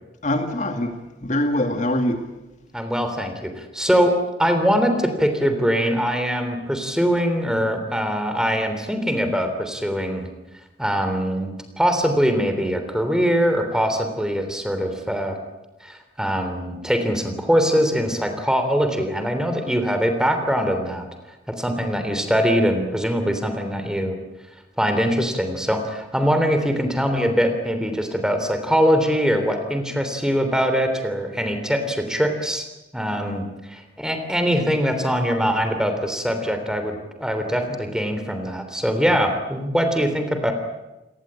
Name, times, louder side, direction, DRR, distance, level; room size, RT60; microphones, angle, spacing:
voice 1, 0.2-2.2, left 1 dB, 45° left, 2.2 m, -23 dB
voice 2, 2.7-10.3 10.8-15.4 15.8-21.1 21.5-24.2 24.8-32.7 32.9-40.5, equal, 5° right, 3.3 m, -22 dB
29.5 x 18.5 x 8.8 m
head